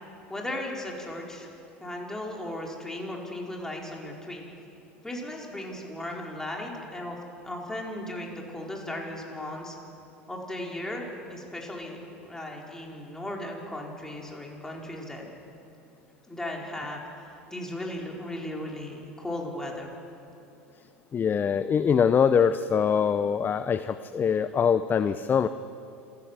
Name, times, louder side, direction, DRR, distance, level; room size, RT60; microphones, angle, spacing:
voice 1, 0.3-1.5 1.8-4.4 5.0-7.2 7.4-9.7 10.3-15.3 16.3-19.9, left 1 dB, 10° left, -1 dB, 4.9 m, -36 dB
voice 2, 21.1-25.5, left 7 dB, 30° left, 13 dB, 0.7 m, -23 dB
27.0 x 14.0 x 7.7 m, 2.7 s
hypercardioid pair, 80°, 7 cm